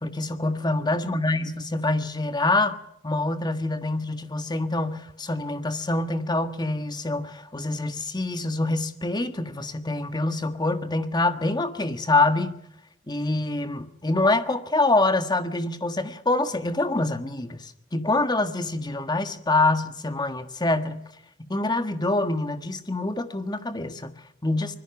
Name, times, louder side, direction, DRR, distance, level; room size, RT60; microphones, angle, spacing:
voice 1, 0.0-2.8 3.0-12.6 13.1-21.1 21.5-24.7, left 2 dB, 20° left, 1.5 m, -25 dB
25.0 x 21.0 x 6.0 m
head